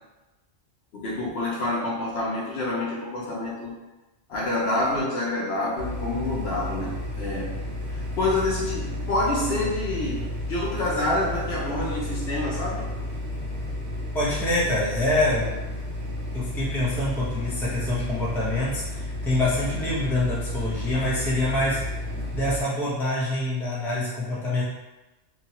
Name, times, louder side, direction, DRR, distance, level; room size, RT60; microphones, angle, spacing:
voice 1, 0.9-3.8 4.3-7.5 7.9-12.9 20.9-21.1, left 2 dB, 65° left, -4 dB, 0.8 m, -27 dB
sound 1, 5.8-22.6, left 1 dB, 85° right, 0.9 m, -32 dB
voice 2, 14.1-15.5 16.3-21.8 22.3-24.6, left 1 dB, ahead, -9 dB, 0.6 m, -26 dB
2.9 x 2.2 x 2.8 m, 1.1 s
omnidirectional pair, 1.2 m